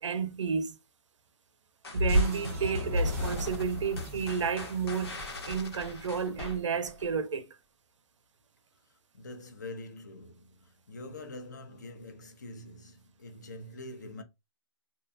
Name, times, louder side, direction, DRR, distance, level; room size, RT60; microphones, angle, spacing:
voice 1, 0.0-0.8 1.9-7.4, right 6 dB, 80° right, 0.5 m, -32 dB
sound 1, 1.8-7.1, left 2 dB, 55° left, 0.8 m, -42 dB
sound 2, 1.9-6.3, equal, 30° right, 0.5 m, -32 dB
voice 2, 9.1-14.2, left 2 dB, 40° left, 0.5 m, -45 dB
2.7 x 2.1 x 2.4 m
hypercardioid pair, 175°, 15 cm